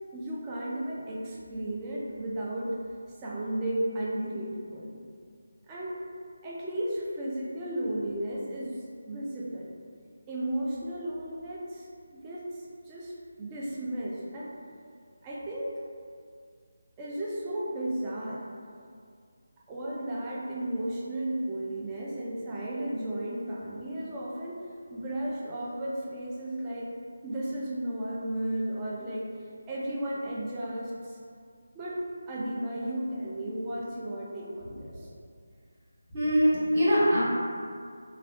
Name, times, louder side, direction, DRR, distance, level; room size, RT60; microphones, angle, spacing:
voice 1, 0.1-2.8 3.2-4.9 5.7-6.0 6.4-9.8 10.3-14.5 15.2-15.8 17.0-18.5 19.7-26.9 27.2-31.2 31.7-35.1, right 1 dB, 15° right, -5 dB, 0.3 m, -34 dB
voice 2, 36.1-37.2, equal, 35° right, -11 dB, 1.1 m, -23 dB
3.3 x 2.1 x 2.3 m, 2.2 s
figure-of-eight pair, 160°, 0 cm